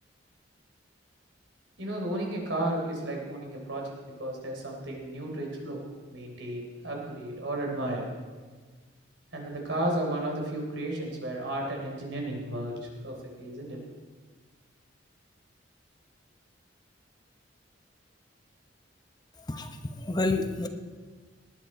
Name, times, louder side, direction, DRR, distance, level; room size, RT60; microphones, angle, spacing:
voice 1, 1.8-3.9 4.2-8.1 9.3-13.8, right 1 dB, 75° right, 0 dB, 3.8 m, -33 dB
voice 2, 19.5-20.7, left 2 dB, 20° left, 6 dB, 0.7 m, -29 dB
19.0 x 10.5 x 4.5 m, 1.4 s
head